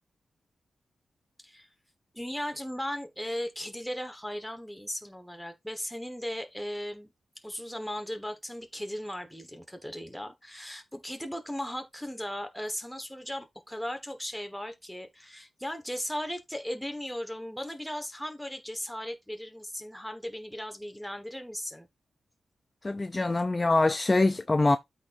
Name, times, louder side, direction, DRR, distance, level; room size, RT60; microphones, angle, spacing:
voice 1, 2.1-7.1 7.4-21.9, equal, ahead, 1.4 m, -37 dB
voice 2, 22.8-24.8, left 2 dB, 20° left, 0.4 m, -24 dB
13.0 x 4.4 x 2.6 m
wide cardioid pair, 145°, 0 cm